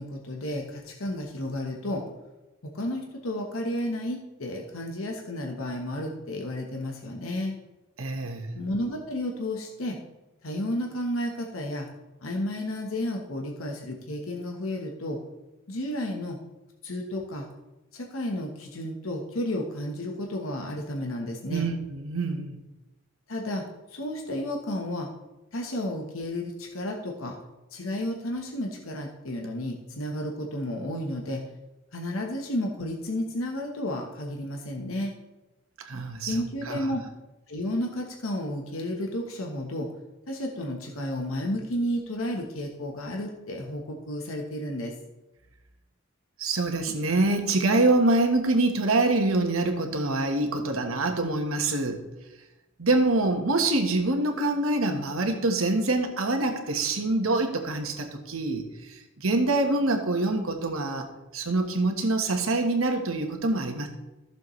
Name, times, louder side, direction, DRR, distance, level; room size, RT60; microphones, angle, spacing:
voice 1, 0.0-2.1 2.6-7.5 8.5-10.0 10.4-11.9 12.2-15.2 15.7-16.4 16.8-17.5 17.9-21.7 23.3-25.1 25.5-27.4 27.7-31.5 31.9-35.1 36.2-37.0 37.5-39.9 40.3-45.0, left 1 dB, 80° left, 1 dB, 1.2 m, -32 dB
voice 2, 8.0-8.6 21.5-22.6 35.8-36.3 36.7-36.8 46.4-52.0 52.8-58.6 58.9-61.1 61.3-63.9, right 2 dB, 85° right, 4 dB, 1.4 m, -25 dB
14.5 x 7.0 x 3.2 m, 1.0 s
head